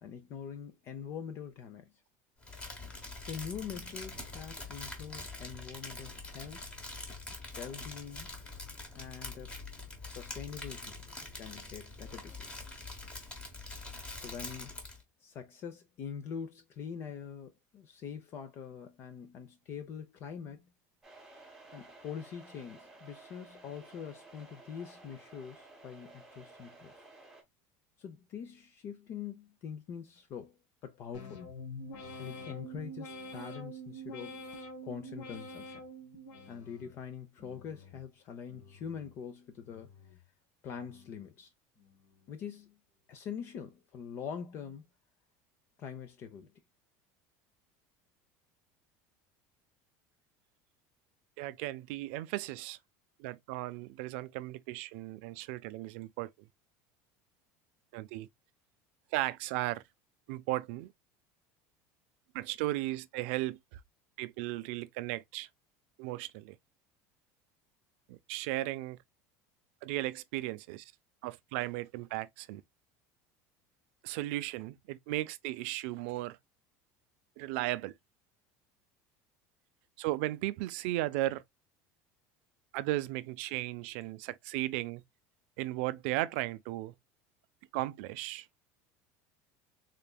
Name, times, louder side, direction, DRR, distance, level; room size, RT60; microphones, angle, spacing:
voice 1, 0.0-2.0 3.3-6.7 7.6-8.3 9.0-9.6 10.0-11.0 11.4-12.8 14.1-14.8 15.2-20.7 21.7-26.9 28.0-31.4 32.2-35.8 36.5-39.9 40.6-41.5 42.3-42.8 43.1-44.8 45.8-46.5, left 7 dB, 35° left, 0.6 m, -44 dB
Crumpling crinkling, 2.4-15.0, left 2 dB, 15° left, 1.1 m, -44 dB
sound 1, 21.0-27.4, right 2 dB, 5° right, 1.1 m, -55 dB
sound 2, 31.1-37.0 37.4-38.0 38.5-39.1 39.6-40.2 40.7-41.3 41.8-42.3, equal, 75° left, 1.7 m, -47 dB
voice 2, 51.4-52.8 53.2-56.5 57.9-58.3 59.1-59.8 60.3-60.9 62.3-63.8 64.2-65.5 66.0-66.6 68.1-69.0 69.8-70.9 71.2-72.6 74.0-76.4 77.4-77.9 80.0-81.4 82.7-85.0 85.6-86.9 87.7-88.5, right 17 dB, 65° right, 0.4 m, -36 dB
3.8 x 3.4 x 2.3 m
cardioid pair, 170°, 7 cm